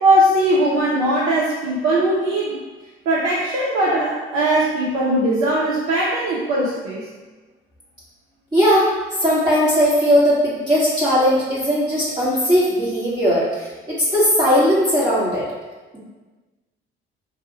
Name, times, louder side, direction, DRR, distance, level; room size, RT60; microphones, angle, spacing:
voice 1, 0.0-2.6 3.1-7.1, right 1 dB, 55° right, -6 dB, 0.7 m, -19 dB
voice 2, 8.5-8.9 9.2-15.5 15.9-16.0, equal, 15° right, -10 dB, 1.0 m, -18 dB
2.7 x 2.3 x 4.0 m, 1.3 s
figure-of-eight pair, 50°, 30 cm